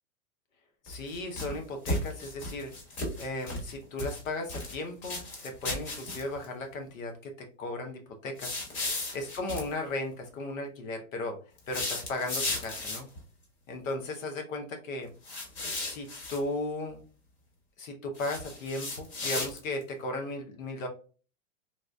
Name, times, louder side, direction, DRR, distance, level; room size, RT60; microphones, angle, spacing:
voice 1, 0.8-2.7 3.2-8.6 9.1-11.4 11.7-13.1 13.7-15.1 15.8-17.0 17.8-20.9, left 2 dB, 75° left, 4 dB, 0.9 m, -36 dB
sound 1, 0.9-1.6 1.9-3.7 4.0-4.8 5.0-6.5 8.4-9.7 11.6-13.2 15.2-16.4 18.2-19.8, left 2 dB, 40° left, 1.5 m, -35 dB
3.9 x 2.4 x 2.2 m, 0.37 s
hypercardioid pair, 115°, 40 cm